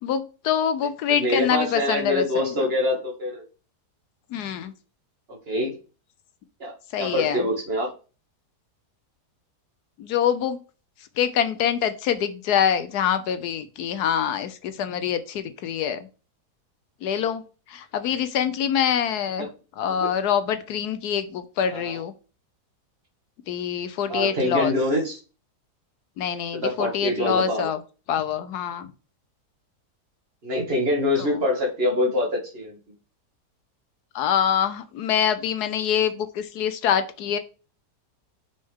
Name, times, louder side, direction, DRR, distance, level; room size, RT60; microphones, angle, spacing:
voice 1, 0.0-2.7 4.3-4.7 6.9-7.4 10.0-10.6 11.2-16.1 17.0-17.4 17.7-19.5 19.8-22.1 23.5-24.7 26.2-27.8 28.1-28.9 31.2-31.4 34.1-37.4, left 8 dB, 75° left, 11 dB, 1.2 m, -25 dB
voice 2, 1.1-3.4 5.5-5.8 6.6-6.7 7.0-7.9 20.0-20.1 21.7-22.0 24.1-25.2 26.5-27.7 30.4-32.8, left 1 dB, 35° right, -1 dB, 2.2 m, -25 dB
6.4 x 5.5 x 3.6 m, 0.34 s
omnidirectional pair, 1.8 m